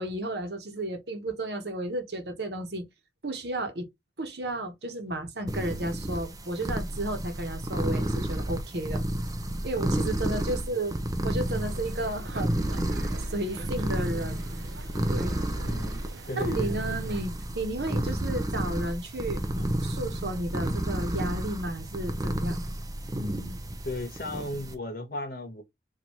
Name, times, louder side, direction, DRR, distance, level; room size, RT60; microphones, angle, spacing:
voice 1, 0.0-2.9 3.2-3.9 4.2-9.0 9.6-12.7 13.3-14.4 15.1-15.4 16.4-22.6 23.1-23.6, right 1 dB, 70° right, 1.1 m, -33 dB
sound 1, 5.5-24.7, right 1 dB, 20° right, 0.6 m, -31 dB
voice 2, 10.3-10.8 15.6-16.0 16.3-16.9 23.8-25.6, left 1 dB, 55° left, 1.2 m, -36 dB
sound 2, 11.5-17.2, right 2 dB, 85° right, 0.6 m, -46 dB
4.4 x 2.6 x 2.8 m
head